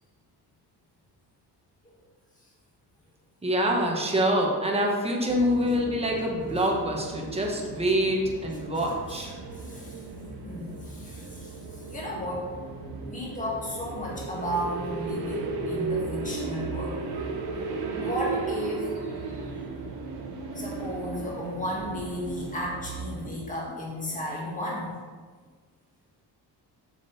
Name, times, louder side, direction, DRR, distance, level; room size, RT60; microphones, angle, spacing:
voice 1, 3.4-9.3 23.4-23.5, equal, 15° right, -1 dB, 1.2 m, -26 dB
sound 1, 5.3-23.3, right 4 dB, 65° right, 1.4 m, -35 dB
voice 2, 9.5-10.0 10.4-11.6 11.9-12.5 13.1-17.0 18.0-19.0 20.6-25.0, equal, 20° left, -4 dB, 2.0 m, -34 dB
7.7 x 6.9 x 4.2 m, 1.5 s
cardioid pair, 170°, 42 cm